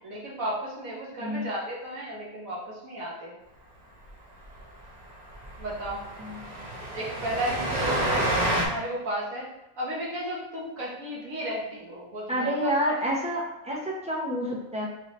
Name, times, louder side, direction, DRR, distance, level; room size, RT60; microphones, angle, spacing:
voice 1, 0.0-3.3 5.6-6.0 6.9-9.5 9.8-12.7, right 1 dB, 70° right, -4 dB, 1.5 m, -33 dB
Train, 4.1-4.2 4.4-4.6 4.8-4.9 5.3-8.6, right 1 dB, 35° right, 0.8 m, -29 dB
voice 2, 6.2-6.6 12.3-14.8, equal, 5° right, -4 dB, 0.7 m, -29 dB
4.8 x 3.3 x 3.0 m, 0.94 s
omnidirectional pair, 1.5 m